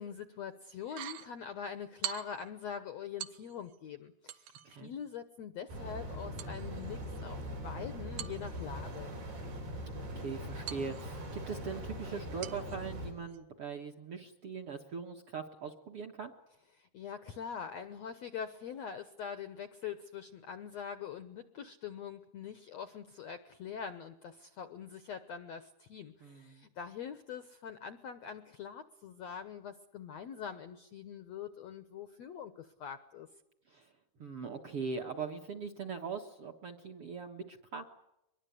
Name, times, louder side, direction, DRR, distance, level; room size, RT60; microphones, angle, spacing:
voice 1, 0.0-9.1 16.8-33.3, left 7 dB, 75° left, 10 dB, 1.6 m, -44 dB
sound 1, 0.8-1.3 2.0-2.5 3.2-3.8 4.3-4.8 6.4-7.4 8.2-9.0 10.7-11.4 12.4-12.8 13.3-13.4, right 11 dB, 75° right, 2.7 m, -44 dB
sound 2, 5.7-13.1, equal, 90° right, 7.4 m, -41 dB
voice 2, 10.1-16.3 26.2-26.7 33.7-33.9 34.2-37.9, right 5 dB, 55° right, 3 dB, 1.6 m, -41 dB
24.0 x 22.0 x 8.4 m, 0.89 s
omnidirectional pair, 4.5 m